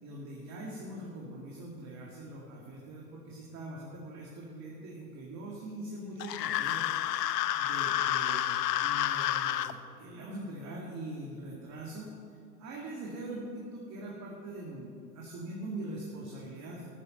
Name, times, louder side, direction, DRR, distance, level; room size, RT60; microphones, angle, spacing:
voice 1, 0.0-6.9 7.6-8.4 8.8-12.1 12.6-16.9, right 1 dB, 35° right, -3 dB, 2.2 m, -42 dB
sound 1, 6.2-9.7, left 12 dB, 75° left, 0.7 m, -30 dB
13.0 x 9.9 x 5.4 m, 2.3 s
hypercardioid pair, 105°, 49 cm